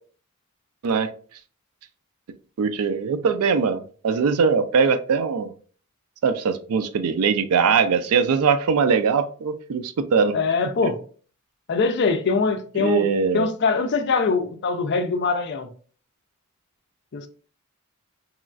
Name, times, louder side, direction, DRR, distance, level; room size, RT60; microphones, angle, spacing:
voice 1, 2.6-5.5 6.2-10.4 12.8-13.5, right 5 dB, 85° right, 0.4 m, -21 dB
voice 2, 10.3-11.0 11.7-13.1 13.3-15.7 17.1-17.3, left 4 dB, 50° left, 0.4 m, -23 dB
3.0 x 2.3 x 2.4 m
head